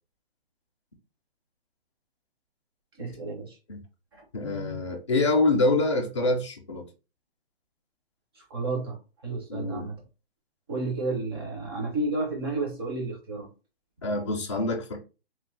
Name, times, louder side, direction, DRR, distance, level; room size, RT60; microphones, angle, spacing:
voice 1, 3.0-3.6 4.1-4.2 8.4-10.0 10.7-13.5, right 2 dB, 25° right, 0.6 m, -31 dB
voice 2, 4.3-6.9 9.5-9.9 14.0-15.0, left 2 dB, 30° left, 0.4 m, -26 dB
2.9 x 2.0 x 3.1 m
hypercardioid pair, 165°, 31 cm